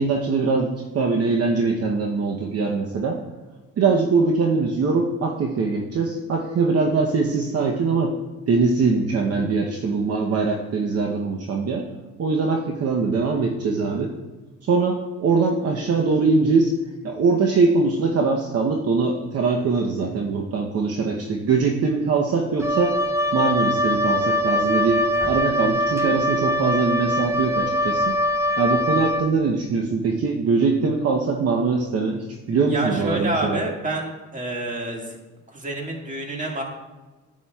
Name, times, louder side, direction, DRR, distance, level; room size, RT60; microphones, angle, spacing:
voice 1, 0.0-3.2 3.8-8.1 8.5-11.8 12.2-14.1 14.6-16.7 17.0-23.0 23.3-28.2 28.6-33.6, right 4 dB, 55° right, 1 dB, 0.9 m, -22 dB
Wind instrument woodwind instrument, 22.6-29.3, left 1 dB, 10° right, 0.5 m, -22 dB
voice 2, 32.7-35.2 35.5-36.6, right 1 dB, 25° right, 0 dB, 1.9 m, -28 dB
9.8 x 9.1 x 2.3 m, 1.2 s
cardioid pair, 90°, 30 cm